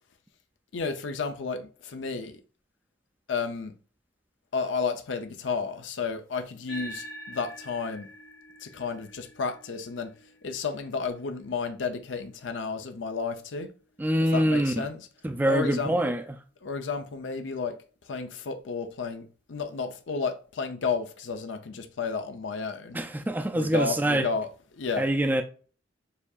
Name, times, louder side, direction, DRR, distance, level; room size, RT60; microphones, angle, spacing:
voice 1, 0.7-2.4 3.3-3.7 4.5-8.1 8.6-10.1 10.4-13.7 14.2-15.1 15.4-16.1 16.6-17.8 18.0-23.0 23.5-24.5 24.7-25.1, left 5 dB, 85° left, 0.6 m, -32 dB
sound 1, 6.7-15.4, equal, 60° left, 1.1 m, -48 dB
voice 2, 14.0-14.7 15.2-16.2 22.9-24.3 25.0-25.4, right 1 dB, 10° right, 0.3 m, -25 dB
6.7 x 2.7 x 2.4 m
head